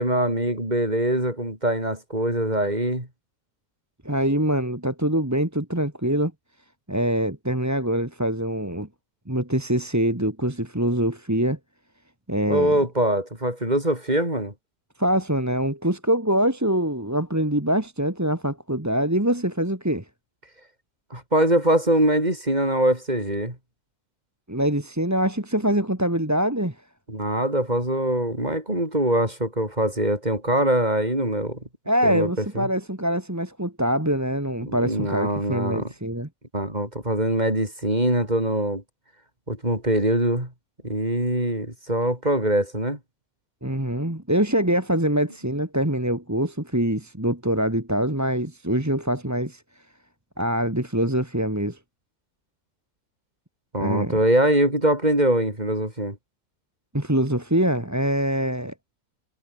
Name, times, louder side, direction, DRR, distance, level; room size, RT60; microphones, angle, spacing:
voice 1, 0.0-3.1 12.5-14.5 21.1-23.6 27.1-31.6 32.0-32.7 34.7-35.9 36.5-38.8 39.5-40.5 40.8-43.0 53.7-56.2, right 1 dB, 25° right, 6.5 m, -23 dB
voice 2, 4.0-6.3 6.9-8.9 9.3-11.6 12.3-12.8 15.0-20.0 24.5-26.8 31.9-36.3 43.6-49.6 50.4-51.8 53.8-54.1 56.9-58.7, right 1 dB, 10° right, 2.3 m, -24 dB
omnidirectional pair, 1.6 m